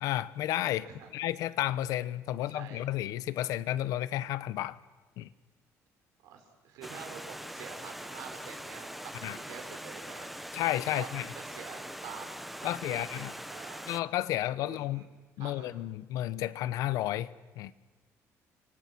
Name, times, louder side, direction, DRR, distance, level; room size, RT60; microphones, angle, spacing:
voice 1, 0.0-4.8 5.2-5.3 9.2-9.4 10.5-11.3 12.6-13.3 13.9-15.0 15.4-17.3 17.6-17.7, left 14 dB, 80° left, 16 dB, 1.0 m, -32 dB
voice 2, 2.4-2.9 6.2-10.3 10.9-11.1 11.4-13.8 14.6-15.1 15.4-15.7, right 7 dB, 90° right, 4 dB, 5.2 m, -47 dB
Stream, 6.8-14.0, equal, ahead, 0.8 m, -42 dB
30.0 x 24.5 x 6.1 m, 1.2 s
cardioid pair, 165°, 6 cm